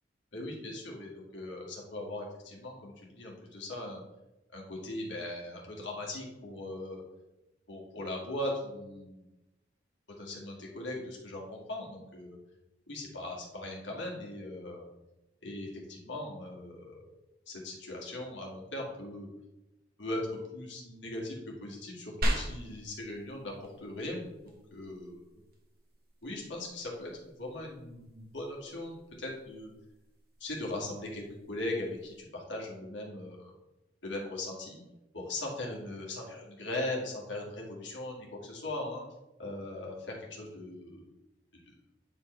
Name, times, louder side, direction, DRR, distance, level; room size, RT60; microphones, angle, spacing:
voice 1, 0.3-4.0 4.5-7.0 7.7-9.3 10.2-12.4 12.9-14.8 15.4-17.1 17.5-19.3 20.0-20.2 20.5-23.5 23.8-25.3 26.2-29.7 30.4-33.5 34.0-34.8 35.1-39.0 39.4-41.0, left 1 dB, 90° left, -2 dB, 2.1 m, -39 dB
sound 1, 22.2-32.2, right 1 dB, 55° right, 1.2 m, -41 dB
9.3 x 4.7 x 3.2 m, 0.97 s
head